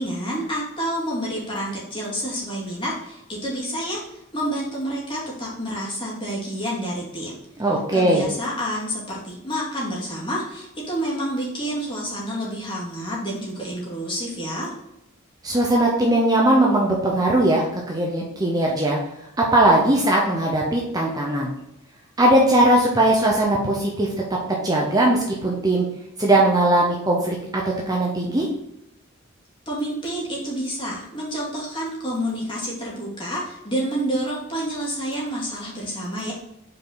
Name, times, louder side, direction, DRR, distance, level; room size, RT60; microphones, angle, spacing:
voice 1, 0.0-4.0 4.3-7.4 7.9-14.7 29.7-36.3, equal, 25° left, -5 dB, 2.3 m, -28 dB
voice 2, 7.6-8.3 15.4-19.0 19.4-21.5 22.2-24.1 24.5-25.9 26.2-28.5, right 1 dB, 20° right, -2 dB, 0.8 m, -19 dB
5.4 x 4.7 x 4.0 m, 0.83 s
head